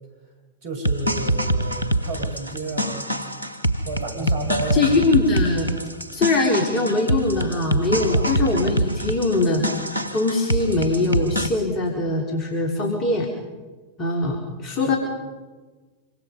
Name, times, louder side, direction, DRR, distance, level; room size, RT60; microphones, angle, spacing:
voice 1, 0.6-3.1 3.9-5.0 8.1-8.3 14.8-15.0, right 3 dB, 50° right, 4 dB, 5.9 m, -31 dB
sound 1, 0.8-11.5, right 1 dB, 85° left, 1.2 m, -25 dB
voice 2, 4.7-5.7 6.1-13.3 14.0-15.0, left 2 dB, 30° left, 1 dB, 4.0 m, -22 dB
26.5 x 24.5 x 5.4 m, 1.3 s
figure-of-eight pair, 90°, 0 cm